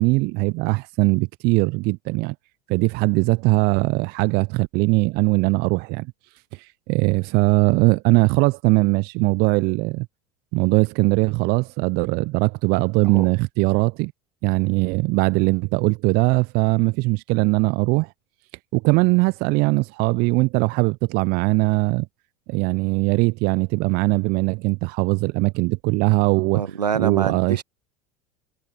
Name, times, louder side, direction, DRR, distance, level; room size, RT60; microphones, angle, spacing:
voice 1, 0.0-2.3 2.7-6.1 6.5-10.1 10.5-14.1 14.4-18.1 18.7-22.1 22.5-26.6 26.9-27.6, right 26 dB, 50° right, 0.7 m, -20 dB
voice 2, 26.5-27.6, right 7 dB, 85° right, 1.7 m, -25 dB
figure-of-eight pair, 75°, 20 cm